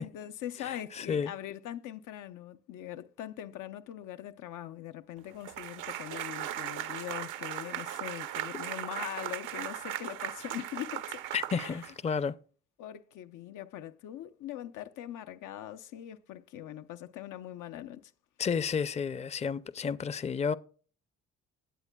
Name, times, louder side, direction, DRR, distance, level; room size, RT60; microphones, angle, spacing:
voice 1, 0.0-11.2 11.5-11.8 12.8-18.1, left 12 dB, 85° left, 0.6 m, -42 dB
voice 2, 0.6-1.3 11.3-12.4 18.4-20.5, left 6 dB, 25° left, 0.5 m, -31 dB
sound 1, 5.4-12.2, right 12 dB, 85° right, 0.7 m, -38 dB
18.0 x 8.2 x 2.2 m
cardioid pair, 90°, 30 cm